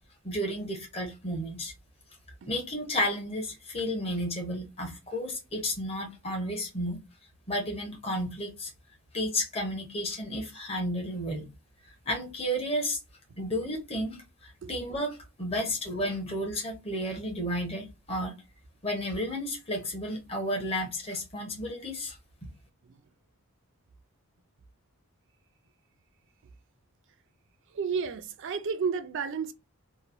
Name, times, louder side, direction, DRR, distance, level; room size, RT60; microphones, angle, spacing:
voice 1, 0.2-1.7 2.4-7.0 7.5-8.7 9.1-11.5 12.1-13.0 13.4-18.3 18.8-22.1, equal, 25° left, 0.9 m, -32 dB
voice 2, 27.7-29.5, right 5 dB, 55° right, 0.4 m, -31 dB
3.0 x 2.1 x 2.6 m
head